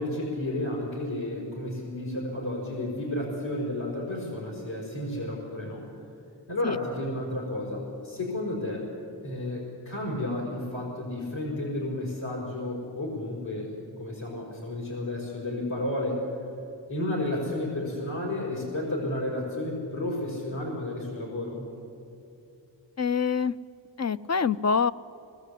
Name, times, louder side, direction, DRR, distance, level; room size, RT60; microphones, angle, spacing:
voice 1, 0.0-5.9 6.5-8.9 9.2-16.2 16.9-21.6, left 1 dB, 75° left, -5 dB, 5.2 m, -32 dB
voice 2, 23.0-23.5 24.0-24.9, left 6 dB, 40° left, 14 dB, 0.4 m, -25 dB
21.5 x 19.5 x 8.3 m, 2.7 s
wide cardioid pair, 70°, 46 cm